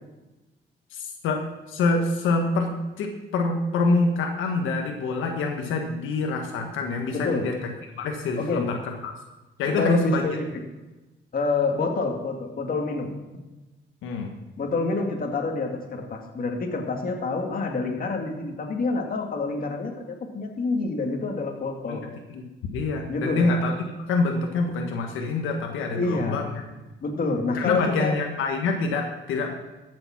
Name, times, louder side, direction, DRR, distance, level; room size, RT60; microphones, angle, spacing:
voice 1, 0.9-1.4 1.7-7.7 8.0-9.1 9.6-10.2 14.0-14.3 21.9-22.0 22.3-22.4 22.7-23.7 24.1-26.6 27.5-29.5, left 3 dB, 90° left, 2 dB, 1.4 m, -26 dB
voice 2, 7.1-7.5 8.4-8.7 9.7-10.5 11.3-13.4 14.6-22.1 23.1-23.5 26.0-26.5 27.0-28.2, left 3 dB, 45° left, 2 dB, 2.2 m, -27 dB
14.0 x 7.2 x 5.9 m, 1.1 s
cardioid pair, 90°, 20 cm